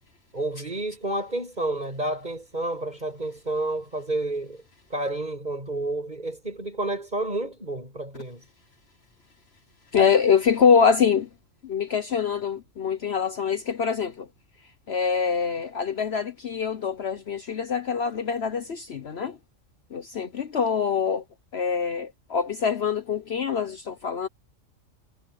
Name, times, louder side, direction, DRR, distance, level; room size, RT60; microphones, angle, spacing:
voice 1, 0.3-4.6 4.9-8.4, right 2 dB, 35° right, 7.5 m, -30 dB
voice 2, 9.9-11.3 11.6-14.3 14.9-19.4 19.9-21.2 21.5-24.3, left 6 dB, 55° left, 1.2 m, -24 dB
omnidirectional pair, 1.3 m